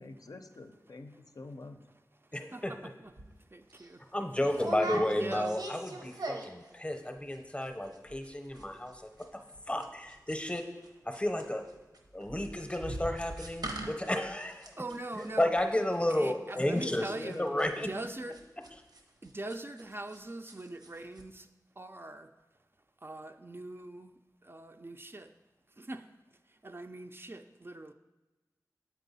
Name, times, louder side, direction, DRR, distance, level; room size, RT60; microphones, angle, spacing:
voice 1, 0.0-1.8 16.8-17.9, left 3 dB, 65° left, 6 dB, 0.4 m, -45 dB
voice 2, 2.3-2.9 4.1-8.9 9.3-9.4 9.7-10.6 11.1-11.6 12.1-14.7 15.2-17.1 17.4-17.9, left 1 dB, 15° left, 5 dB, 0.7 m, -32 dB
sound 1, 3.2-3.3 3.7-3.9 4.5-6.7 6.9-7.4 7.6-7.7 7.9-8.3 8.6-10.9 11.1-20.2 20.5-20.9 21.2-21.3, right 2 dB, 80° right, 0.8 m, -42 dB
voice 3, 3.5-4.0 5.2-5.6 14.8-15.5 16.1-17.4 17.8-18.3 19.2-21.5 21.8-22.3 23.0-24.1 24.4-25.3 25.8-26.1 26.5-27.9, right 2 dB, 35° right, 7 dB, 0.3 m, -42 dB
7.6 x 4.5 x 4.1 m, 1.1 s
wide cardioid pair, 55°, 7 cm